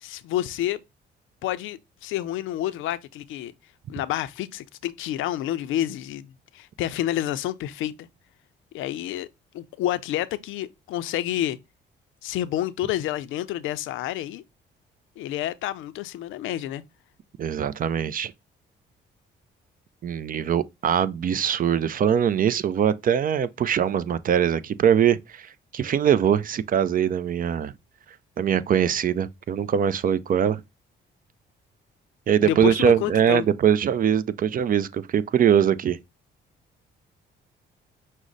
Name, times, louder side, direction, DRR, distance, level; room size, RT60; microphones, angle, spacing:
voice 1, 0.0-0.8 1.4-3.5 3.9-6.3 6.5-8.1 8.7-9.3 9.5-11.6 12.2-14.4 15.2-16.8 32.4-33.5, left 13 dB, 85° left, 0.5 m, -29 dB
voice 2, 17.4-18.3 20.0-27.7 28.4-30.6 32.3-36.0, right 8 dB, 45° right, 0.4 m, -22 dB
6.1 x 2.1 x 3.8 m
cardioid pair, 90°, 20 cm